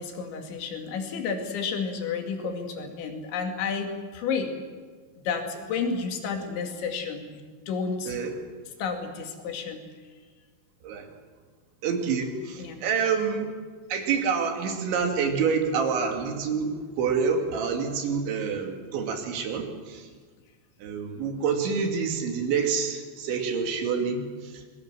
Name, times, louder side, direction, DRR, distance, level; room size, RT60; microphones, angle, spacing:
voice 1, 0.0-4.5 5.2-8.2 8.8-9.8 12.6-12.8, left 5 dB, 85° left, 4 dB, 4.7 m, -31 dB
voice 2, 11.8-13.5 13.9-20.1 20.8-24.6, right 6 dB, 80° right, 4 dB, 4.7 m, -27 dB
26.0 x 21.5 x 7.6 m, 1.5 s
omnidirectional pair, 5.2 m